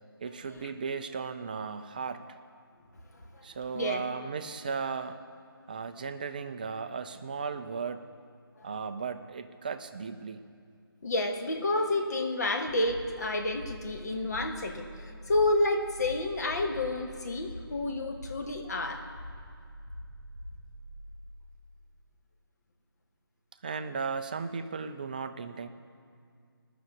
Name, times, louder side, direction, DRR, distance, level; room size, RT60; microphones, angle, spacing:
voice 1, 0.2-2.4 3.4-5.2 5.7-8.1 8.6-10.5 23.6-25.7, right 5 dB, 20° right, 9 dB, 0.4 m, -36 dB
voice 2, 3.1-3.5 3.7-4.0 8.6-8.7 11.0-19.0, left 2 dB, 45° left, 4 dB, 1.3 m, -30 dB
sound 1, 12.8-21.9, equal, 65° left, 2.9 m, -45 dB
17.0 x 6.7 x 8.2 m, 2.2 s
figure-of-eight pair, 155°, 12 cm